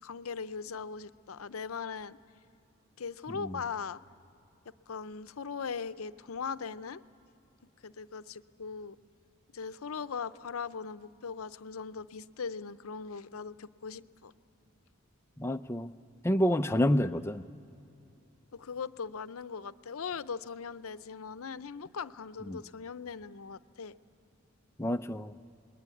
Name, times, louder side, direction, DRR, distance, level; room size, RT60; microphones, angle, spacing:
voice 1, 0.0-2.2 3.0-4.0 4.9-7.0 7.8-9.0 9.5-14.3 18.5-23.9, left 5 dB, 85° left, 14 dB, 0.6 m, -39 dB
voice 2, 15.4-15.9 16.2-17.4 22.5-22.6 24.8-25.3, equal, 10° left, 8 dB, 0.5 m, -28 dB
27.5 x 21.0 x 8.5 m, 2.8 s
head